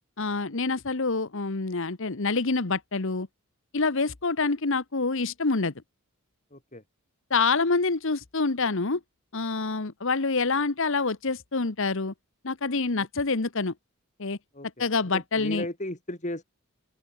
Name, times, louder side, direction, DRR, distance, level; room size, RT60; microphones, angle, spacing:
voice 1, 0.2-3.3 3.7-5.7 7.3-9.0 9.3-12.1 12.4-13.7 14.2-14.4 14.8-15.7, left 4 dB, 60° left, 1.2 m, -26 dB
voice 2, 6.5-6.8 13.0-13.1 14.5-14.7 15.1-16.4, left 1 dB, 35° left, 3.9 m, -35 dB
open air
head